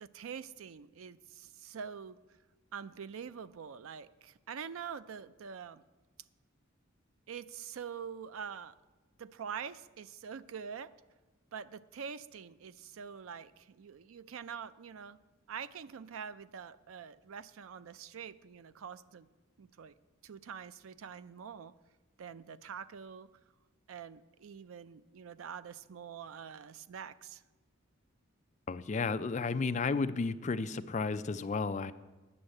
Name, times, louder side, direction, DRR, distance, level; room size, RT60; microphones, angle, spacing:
voice 1, 0.0-2.2 2.7-5.8 7.3-8.7 9.2-10.9 11.5-15.2 15.5-19.3 19.6-19.9 20.2-21.7 22.2-23.3 23.9-27.4, right 7 dB, 75° right, 15 dB, 0.4 m, -45 dB
voice 2, 28.7-31.9, left 4 dB, 35° left, 11 dB, 0.3 m, -33 dB
9.8 x 6.3 x 7.7 m, 1.2 s
head